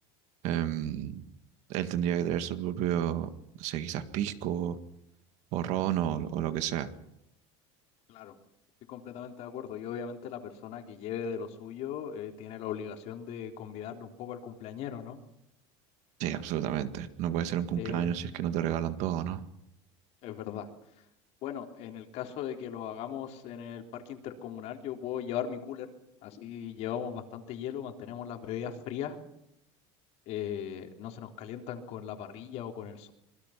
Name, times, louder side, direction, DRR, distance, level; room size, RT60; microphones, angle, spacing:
voice 1, 0.4-1.2 1.7-3.3 3.6-4.8 5.5-6.9 16.2-19.4, right 10 dB, 55° right, 10 dB, 1.9 m, -31 dB
voice 2, 8.9-15.2 17.8-18.1 20.2-20.7 21.4-25.9 26.2-29.2 30.3-33.1, left 9 dB, 50° left, 4 dB, 3.7 m, -38 dB
26.0 x 21.5 x 6.0 m, 0.79 s
cardioid pair, 155°, 14 cm